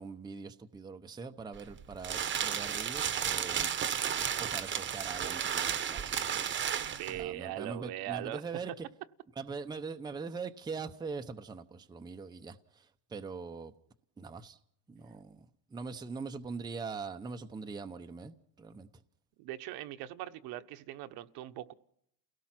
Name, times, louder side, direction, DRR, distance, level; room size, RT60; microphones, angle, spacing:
voice 1, 0.0-3.7 4.4-6.4 7.1-8.9 9.4-13.7 14.2-14.6 14.9-18.9, right 4 dB, 10° right, 0.8 m, -42 dB
sound 1, 1.5-7.2, right 8 dB, 25° right, 1.1 m, -33 dB
voice 2, 6.8-8.4 19.4-21.7, right 14 dB, 60° right, 1.2 m, -40 dB
29.5 x 18.0 x 6.0 m
cardioid pair, 150°, 42 cm